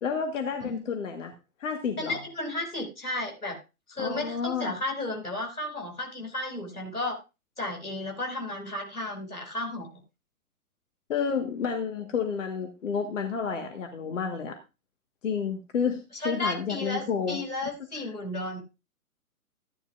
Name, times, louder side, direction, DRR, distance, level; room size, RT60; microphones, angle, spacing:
voice 1, 0.0-1.3 1.6-2.2 4.0-4.7 11.1-14.6 15.2-17.4, left 6 dB, 55° left, 5 dB, 1.6 m, -30 dB
voice 2, 2.0-3.6 3.9-7.2 7.6-9.9 16.1-17.0 17.3-18.6, left 2 dB, 90° left, 1 dB, 5.3 m, -33 dB
14.5 x 10.5 x 2.5 m, 0.28 s
figure-of-eight pair, 120°, 44 cm